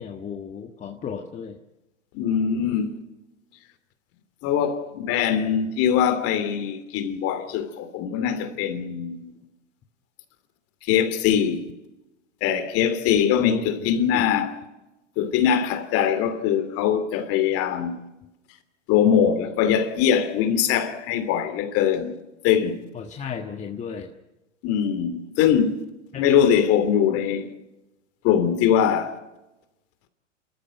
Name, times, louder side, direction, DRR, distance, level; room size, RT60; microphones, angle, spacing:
voice 1, 0.0-1.6 13.4-14.3 22.9-24.1 26.1-26.3, left 7 dB, 20° left, 1.5 m, -35 dB
voice 2, 2.1-2.9 4.4-9.3 10.8-11.6 12.4-14.5 15.2-18.0 18.9-22.1 22.4-22.8 24.6-25.7 26.2-27.5 28.2-29.2, left 8 dB, 35° left, 2.8 m, -22 dB
28.5 x 14.0 x 7.8 m
hypercardioid pair, 125°, 38 cm